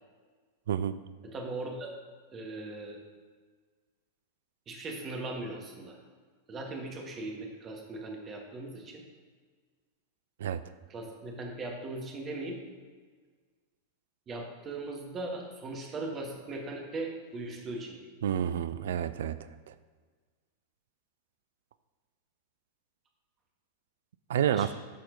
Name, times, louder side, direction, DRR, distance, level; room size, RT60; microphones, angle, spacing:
voice 1, 0.7-1.0 10.4-10.6 18.2-19.4 24.3-24.7, right 9 dB, 65° right, 13 dB, 0.4 m, -29 dB
voice 2, 1.2-1.9 2.3-3.0 4.7-6.0 6.5-9.0 10.9-12.6 14.3-18.1 24.5-24.7, right 2 dB, 30° right, 1 dB, 1.7 m, -39 dB
12.5 x 4.3 x 4.0 m, 1.5 s
figure-of-eight pair, 90°, 0 cm